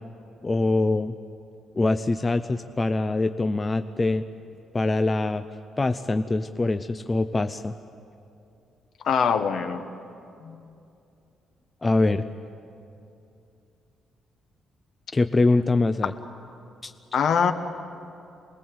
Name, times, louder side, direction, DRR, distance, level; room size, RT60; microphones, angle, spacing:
voice 1, 0.4-1.2 1.8-4.2 4.7-5.4 5.8-7.7 11.8-12.2 15.1-16.1 16.8-16.9, left 2 dB, 15° left, 9 dB, 0.5 m, -23 dB
voice 2, 9.0-9.8 10.4-10.6 17.1-17.5, left 6 dB, 55° left, 8 dB, 1.4 m, -23 dB
27.0 x 20.5 x 7.8 m, 2.7 s
cardioid pair, 165°, 0 cm